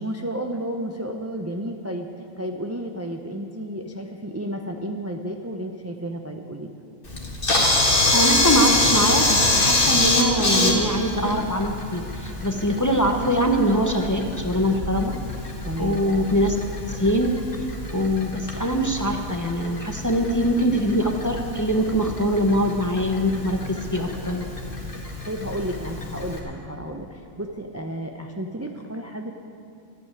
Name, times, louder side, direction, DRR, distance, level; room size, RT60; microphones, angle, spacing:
voice 1, 0.0-6.7 15.6-16.0 25.2-29.3, right 1 dB, 20° right, 2 dB, 0.4 m, -32 dB
Camera, 7.1-26.4, left 2 dB, 40° left, 1.9 m, -25 dB
voice 2, 8.1-15.1 15.8-16.6 16.9-17.3 17.9-24.5, equal, 15° left, 3 dB, 0.7 m, -23 dB
14.0 x 7.9 x 9.6 m, 2.5 s
omnidirectional pair, 1.4 m